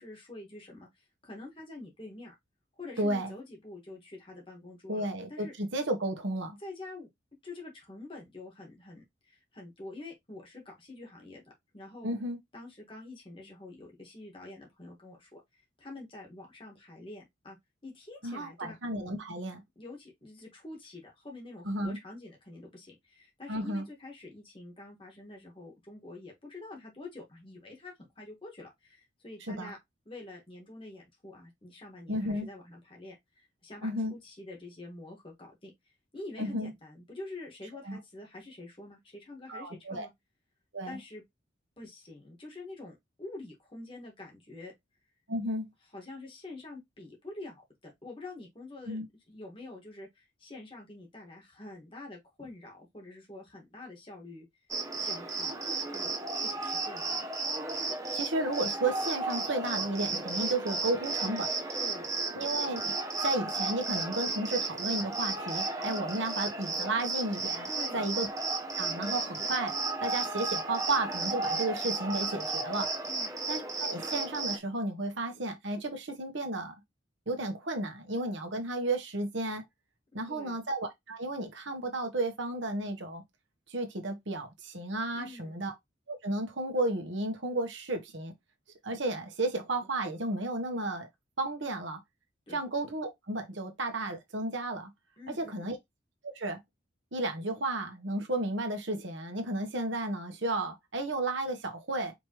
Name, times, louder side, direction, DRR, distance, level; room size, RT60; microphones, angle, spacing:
voice 1, 0.0-2.3 2.8-5.5 6.6-7.1 7.4-12.1 12.5-15.4 15.8-17.6 17.8-18.8 19.7-29.8 30.0-35.7 36.1-40.1 40.9-41.2 41.8-44.7 45.9-49.0 49.3-54.5 55.0-55.6 55.9-57.2 61.8-62.1 67.7-68.1 73.0-73.3 80.3-80.6 85.1-85.6 92.5-92.6 95.2-95.8, left 2 dB, 25° left, 1.7 m, -47 dB
voice 2, 3.0-3.3 4.9-6.6 12.0-12.4 18.2-19.6 21.6-22.0 23.5-23.8 29.5-29.7 32.1-32.5 33.8-34.1 36.4-36.7 37.8-38.0 39.5-40.1 40.7-40.9 45.3-45.7 48.9-49.0 58.1-61.5 62.3-62.9 63.2-68.3 68.8-69.7 70.0-72.9 73.5-76.7 77.3-79.6 80.1-83.2 83.7-85.7 86.1-88.3 88.8-91.1 91.4-92.0 92.5-94.9 95.4-95.8 96.2-96.6 97.1-102.1, right 2 dB, 70° right, 1.4 m, -33 dB
Cricket, 54.7-74.6, right 3 dB, 15° right, 0.9 m, -34 dB
5.1 x 3.4 x 3.0 m
head